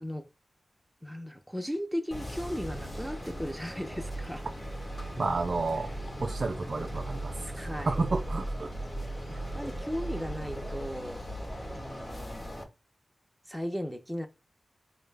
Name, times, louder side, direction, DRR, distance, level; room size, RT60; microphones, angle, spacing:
voice 1, 1.0-4.4 7.6-8.0 9.3-11.3 11.7-12.5 13.5-14.3, equal, ahead, 0.5 m, -36 dB
sound 1, 2.1-12.6, right 1 dB, 35° left, 1.0 m, -37 dB
voice 2, 5.2-5.9 6.2-8.7 9.3-9.6, right 3 dB, 60° right, 0.4 m, -32 dB
4.6 x 2.1 x 3.2 m
wide cardioid pair, 85°, 0 cm